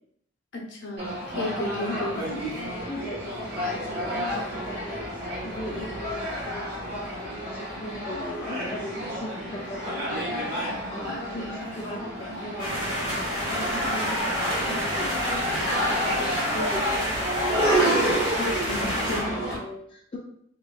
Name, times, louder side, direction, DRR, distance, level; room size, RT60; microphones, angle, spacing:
voice 1, 0.5-2.3 18.4-19.3, left 1 dB, 65° left, -1 dB, 0.7 m, -33 dB
sound 1, 1.0-19.6, equal, 50° right, 1.3 m, -29 dB
voice 2, 1.8-10.2 10.9-15.4 15.7-17.8 18.8-20.2, left 1 dB, 25° left, -3 dB, 0.3 m, -38 dB
sound 2, 12.6-19.2, equal, 25° right, 1.1 m, -30 dB
2.9 x 2.8 x 2.3 m, 0.69 s
head